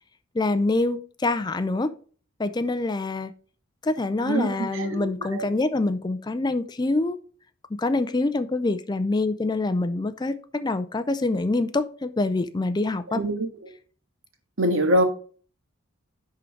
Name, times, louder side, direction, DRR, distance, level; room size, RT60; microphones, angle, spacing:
voice 1, 0.3-1.9 2.4-3.3 3.8-7.2 7.8-13.2, left 2 dB, 20° left, 0.4 m, -25 dB
voice 2, 4.2-5.4 13.1-13.5 14.6-15.0, right 1 dB, 75° right, 1.8 m, -24 dB
11.0 x 3.8 x 4.6 m
head